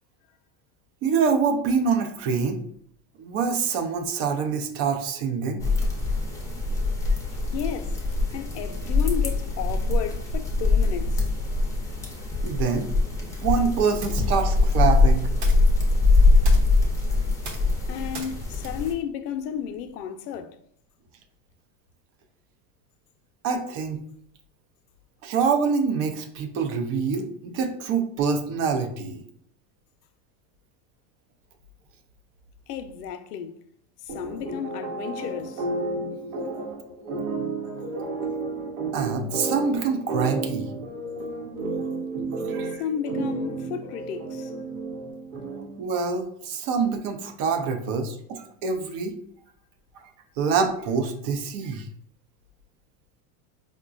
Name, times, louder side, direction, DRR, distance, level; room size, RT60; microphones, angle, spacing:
voice 1, 1.0-2.6 3.2-5.6 12.4-12.9 13.2-15.3 23.4-24.0 25.2-29.2 38.9-40.7 42.4-42.8 45.8-49.1 50.0-50.1 50.4-51.9, right 5 dB, 45° right, 0.6 m, -25 dB
sound 1, 5.6-18.9, left 3 dB, 5° left, 0.6 m, -23 dB
voice 2, 7.5-11.3 17.9-20.6 32.7-33.6 34.0-35.7 42.8-44.5, left 8 dB, 85° left, 0.6 m, -33 dB
sound 2, 14.0-20.1, right 3 dB, 60° right, 1.0 m, -44 dB
sound 3, 34.1-45.9, right 3 dB, 80° right, 1.1 m, -32 dB
4.8 x 2.2 x 2.5 m
supercardioid pair, 130°, 46 cm